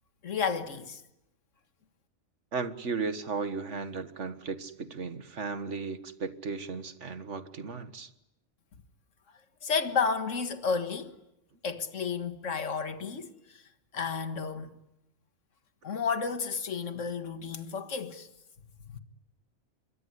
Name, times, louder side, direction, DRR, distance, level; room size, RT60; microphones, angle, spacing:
voice 1, 0.2-1.0 9.6-11.1 11.6-13.6 13.9-14.8 15.8-18.3 18.9-19.0, left 5 dB, 70° left, 2.0 m, -32 dB
voice 2, 2.5-8.1, right 4 dB, 65° right, 1.9 m, -35 dB
26.0 x 23.0 x 9.9 m
omnidirectional pair, 1.4 m